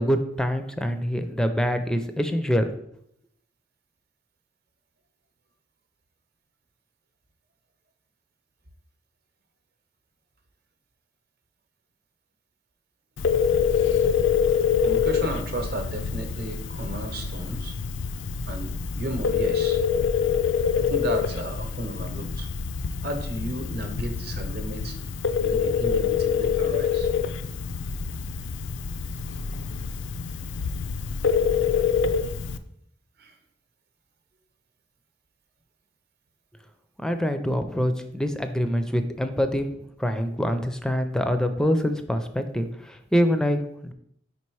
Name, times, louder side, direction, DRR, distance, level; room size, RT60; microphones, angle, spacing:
voice 1, 0.0-2.7 37.0-43.9, equal, 5° left, 8 dB, 0.4 m, -25 dB
Telephone, 13.2-32.6, left 6 dB, 70° left, 0.4 m, -26 dB
voice 2, 14.8-17.7 18.5-19.8 20.7-22.5 23.0-25.0 25.4-27.1 33.2-33.3, right 1 dB, 55° right, 5 dB, 0.9 m, -34 dB
5.1 x 4.2 x 4.6 m, 0.73 s
head